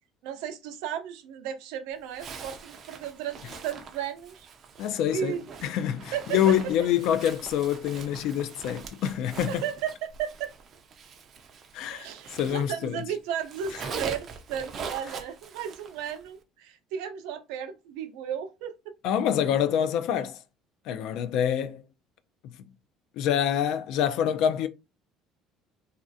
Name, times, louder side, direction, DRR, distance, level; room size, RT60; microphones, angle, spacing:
voice 1, 0.2-4.5 5.1-5.4 6.1-6.6 9.5-10.5 11.9-19.0, right 9 dB, 90° right, 0.6 m, -34 dB
Zipper (clothing), 2.1-13.0 13.3-16.3, right 5 dB, 35° right, 0.4 m, -42 dB
voice 2, 4.8-9.6 11.7-13.0 19.0-20.4 20.9-21.8 23.2-24.7, left 10 dB, 60° left, 0.3 m, -26 dB
3.1 x 2.4 x 2.6 m
cardioid pair, 165°, 0 cm